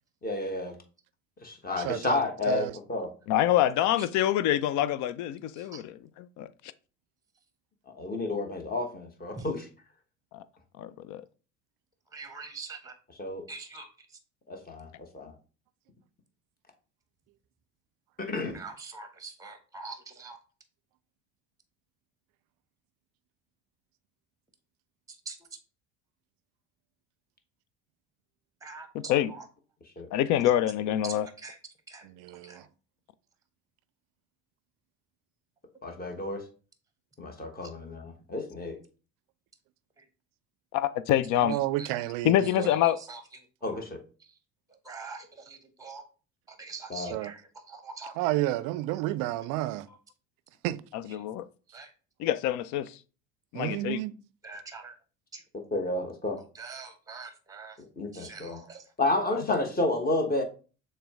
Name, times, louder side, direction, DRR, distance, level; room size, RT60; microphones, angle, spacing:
voice 1, 0.2-0.7 1.4-3.1 7.9-9.7 13.2-13.4 14.5-14.9 15.1-15.3 18.2-18.6 30.0-30.1 35.8-36.4 37.2-38.8 43.6-44.0 46.9-47.2 55.5-56.4 57.8-58.6 59.0-60.4, left 2 dB, 25° left, 1.2 m, -31 dB
voice 2, 1.8-2.8 32.0-32.7 41.4-42.7 47.1-47.3 48.2-49.9 50.6-50.8 53.5-54.1, right 16 dB, 60° right, 0.5 m, -31 dB
voice 3, 3.3-6.5 10.3-10.4 10.8-11.2 28.9-29.3 30.1-31.3 40.7-41.5 42.2-43.0 50.9-51.5 52.2-53.0 53.5-54.0 59.5-59.6, left 12 dB, 50° left, 0.5 m, -26 dB
voice 4, 12.1-12.9 13.5-13.9 18.5-20.4 25.2-25.4 28.6-29.5 31.4-31.6 31.9-32.1 32.4-32.7 40.0-40.1 41.8-42.0 42.4-43.2 43.6-43.8 44.2-44.3 44.7-46.0 46.5-48.1 49.9-50.0 51.7-51.9 54.4-54.9 55.3-55.4 56.5-57.8 58.1-58.9, right 4 dB, 10° right, 0.9 m, -44 dB
6.6 x 2.2 x 3.6 m
hypercardioid pair, 65°, 38 cm